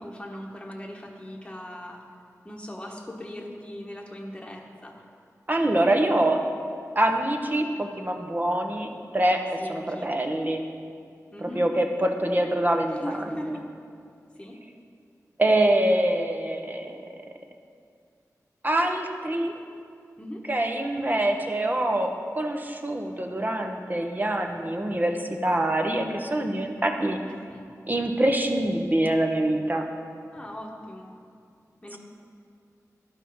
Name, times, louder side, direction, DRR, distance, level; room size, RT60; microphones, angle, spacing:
voice 1, 0.0-2.0 2.4-5.0 9.6-10.2 11.3-11.6 12.9-13.7 14.4-14.6 20.2-20.5 27.0-27.7 30.3-31.1 31.8-32.0, equal, 15° left, -1 dB, 1.2 m, -39 dB
voice 2, 5.5-6.4 6.9-9.4 9.7-10.6 11.4-13.6 15.4-17.0 18.6-19.5 20.5-27.2 27.9-29.9 31.9-32.0, right 1 dB, 30° right, 3 dB, 0.9 m, -25 dB
12.0 x 5.5 x 5.5 m, 2.3 s
wide cardioid pair, 60°, 6 cm